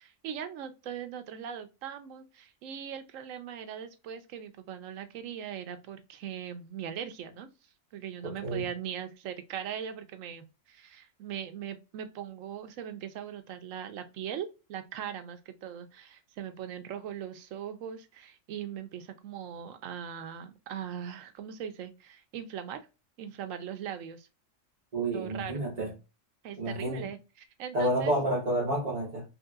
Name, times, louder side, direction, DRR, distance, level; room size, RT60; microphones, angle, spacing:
voice 1, 0.0-7.5 7.9-22.8 23.2-24.3 25.1-25.7 26.4-28.1, right 9 dB, 80° right, 0.9 m, -40 dB
voice 2, 8.2-8.6 24.9-25.9 26.6-27.0 27.7-29.2, right 1 dB, 35° right, 1.1 m, -29 dB
3.3 x 2.7 x 2.3 m
omnidirectional pair, 1.3 m